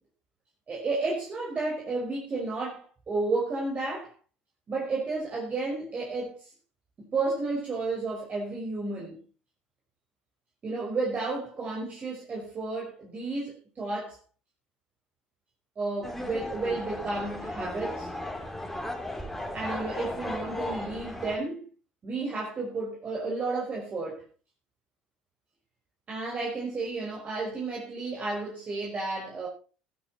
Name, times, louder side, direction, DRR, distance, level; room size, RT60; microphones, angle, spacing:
voice 1, 0.7-4.1 4.7-6.5 7.0-9.2 10.6-14.2 15.8-18.1 19.5-21.6 22.0-24.2 26.1-29.5, right 3 dB, 35° right, 5.8 m, -32 dB
sound 1, 16.0-21.4, left 1 dB, 5° left, 3.8 m, -36 dB
13.5 x 13.0 x 4.4 m
supercardioid pair, 80°, 4 cm